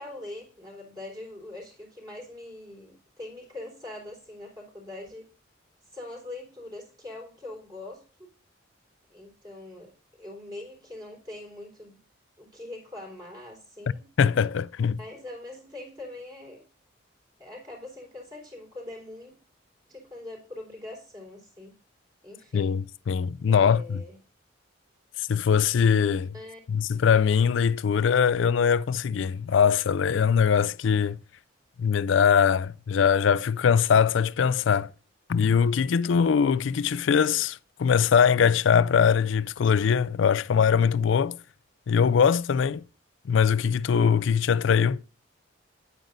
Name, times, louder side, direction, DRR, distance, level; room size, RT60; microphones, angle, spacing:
voice 1, 0.0-5.3 5.9-8.3 9.1-9.9 10.2-12.0 12.4-14.1 15.0-16.7 17.4-19.3 19.9-21.7 22.2-22.8 23.4-24.2 26.3-26.7, left 2 dB, 20° right, 3.7 m, -42 dB
voice 2, 14.2-15.0 22.5-24.0 25.3-26.3 26.7-31.2 31.8-34.9 35.3-41.4 41.9-42.8 43.3-45.0, left 7 dB, 70° left, 0.4 m, -22 dB
9.7 x 9.0 x 2.6 m
head